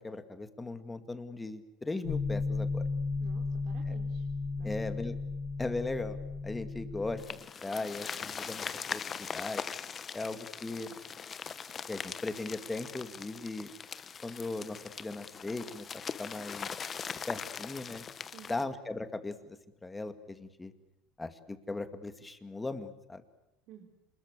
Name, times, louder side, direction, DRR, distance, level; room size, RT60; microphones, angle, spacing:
voice 1, 0.0-2.9 3.9-4.0 4.6-5.1 5.6-6.2 6.4-7.2 7.6-9.6 10.1-10.9 11.9-13.7 14.2-15.9 16.2-16.7 17.3-18.0 18.5-19.4 19.8-20.7 21.2-23.2, left 2 dB, 10° left, 10 dB, 2.2 m, -38 dB
sound 1, 2.0-7.2, left 4 dB, 55° left, 3.0 m, -34 dB
voice 2, 3.2-4.3 4.6-4.7 17.5-17.6 18.3-18.7 23.7-23.8, right 8 dB, 60° right, 2 dB, 4.2 m, -53 dB
sound 2, 7.2-18.6, left 6 dB, 30° left, 1.2 m, -41 dB
27.5 x 21.0 x 8.3 m, 0.89 s
supercardioid pair, 125°, 0 cm